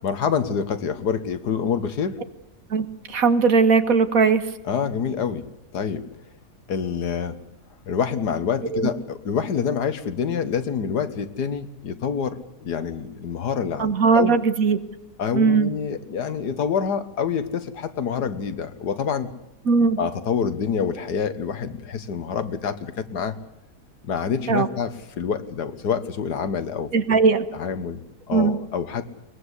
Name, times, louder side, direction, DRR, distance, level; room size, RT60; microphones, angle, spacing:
voice 1, 0.0-2.2 4.7-5.5 5.7-6.0 6.7-7.4 7.9-14.4 15.2-19.3 20.0-23.4 24.0-27.2 27.5-28.0 28.3-29.0, left 7 dB, 80° left, 11 dB, 1.9 m, -27 dB
voice 2, 2.7-4.4 8.7-8.9 13.8-14.8 15.3-15.7 19.7-20.0 24.5-24.7 26.9-27.5 28.3-28.6, right 5 dB, 60° right, 10 dB, 1.8 m, -19 dB
22.5 x 20.5 x 8.3 m, 0.89 s
omnidirectional pair, 1.7 m